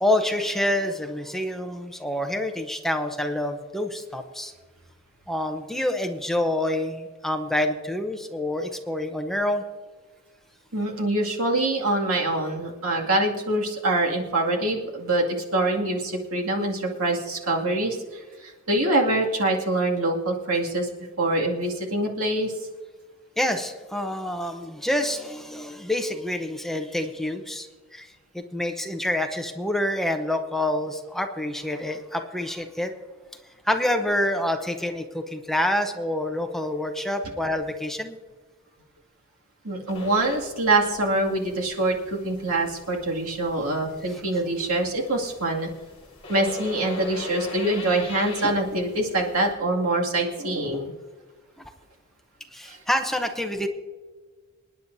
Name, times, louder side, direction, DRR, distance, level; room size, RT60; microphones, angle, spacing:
voice 1, 0.0-4.5 5.3-9.6 23.4-27.7 27.9-28.1 28.3-32.9 33.6-38.2 51.6-51.7 52.5-53.7, left 1 dB, ahead, 4 dB, 0.8 m, -27 dB
voice 2, 10.7-20.9 21.2-22.5 39.6-45.7 46.3-50.9 52.6-52.8, right 2 dB, 85° right, -1 dB, 2.3 m, -25 dB
sound 1, 39.9-49.5, left 1 dB, 30° left, 4.1 m, -40 dB
27.0 x 10.0 x 2.7 m, 1.4 s
head